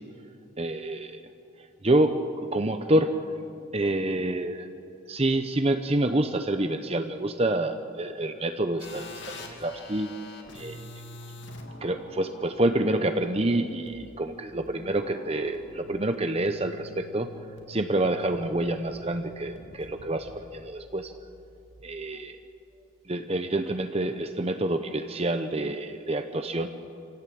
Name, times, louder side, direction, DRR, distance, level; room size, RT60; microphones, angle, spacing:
voice 1, 0.6-1.3 1.8-3.2 3.7-4.7 5.1-9.3 9.6-10.1 10.5-10.8 11.8-17.3 17.7-21.1 21.8-22.3 23.1-26.7, right 1 dB, 30° right, 8 dB, 0.8 m, -27 dB
sound 1, 8.8-21.7, left 2 dB, 55° left, 2.7 m, -46 dB
26.0 x 17.5 x 8.6 m, 2.6 s
head